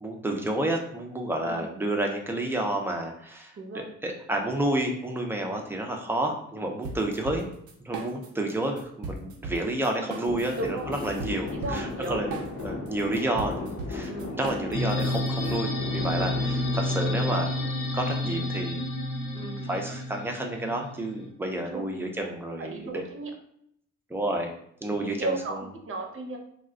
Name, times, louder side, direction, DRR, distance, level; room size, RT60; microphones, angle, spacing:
voice 1, 0.0-7.5 7.8-12.4 12.6-17.5 17.9-18.8 19.6-23.0 24.1-24.5 24.8-25.6, right 1 dB, 10° right, 1 dB, 0.6 m, -30 dB
sound 1, 6.8-8.5 8.8-15.6, right 3 dB, 80° right, 0.7 m, -38 dB
sound 2, 10.3-18.5, left 3 dB, 50° left, 0.7 m, -36 dB
voice 2, 11.5-12.2 14.1-14.4 19.3-19.7 21.7-21.8 22.6-23.3 24.9-26.4, right 3 dB, 45° right, 3 dB, 0.7 m, -34 dB
sound 3, 14.7-21.3, left 1 dB, 70° left, 1.0 m, -30 dB
2.4 x 2.2 x 3.7 m, 0.70 s
cardioid pair, 90°, 30 cm